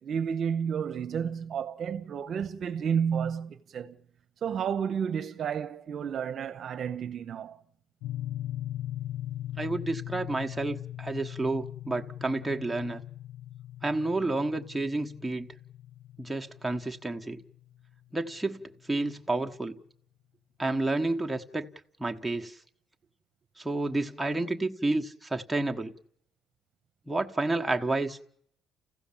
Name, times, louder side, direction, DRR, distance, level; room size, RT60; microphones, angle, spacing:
voice 1, 0.0-4.0 4.4-7.6, right 7 dB, 50° right, 0.9 m, -31 dB
sound 1, 8.0-18.2, left 13 dB, 85° left, 0.8 m, -40 dB
voice 2, 9.6-13.0 13.8-15.5 16.2-17.4 18.1-18.6 18.9-19.8 20.6-21.7 22.0-22.6 23.6-25.9 27.1-28.2, right 2 dB, 5° right, 1.2 m, -30 dB
29.0 x 15.5 x 7.3 m
cardioid pair, 120°, 0 cm